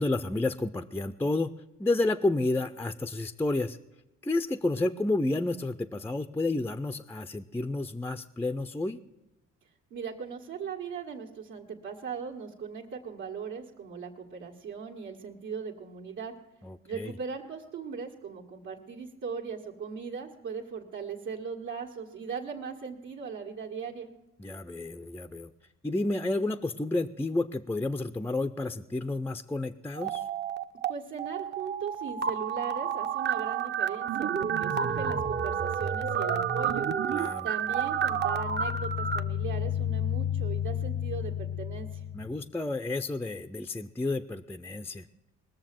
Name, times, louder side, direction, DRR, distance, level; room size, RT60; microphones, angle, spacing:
voice 1, 0.0-1.5 1.8-3.8 4.2-9.0 16.6-17.1 24.4-25.5 25.8-30.2 37.1-37.5 42.1-45.1, left 2 dB, 10° left, 8 dB, 0.4 m, -30 dB
voice 2, 9.9-16.3 16.9-24.1 30.9-36.9 37.4-42.0, right 6 dB, 75° right, -2 dB, 1.8 m, -39 dB
sound 1, 30.0-30.9 31.2-39.2, right 7 dB, 35° right, 0.7 m, -30 dB
sound 2, 37.7-42.4, left 10 dB, 80° left, 0.5 m, -32 dB
20.0 x 6.9 x 7.5 m, 0.97 s
cardioid pair, 90°, 30 cm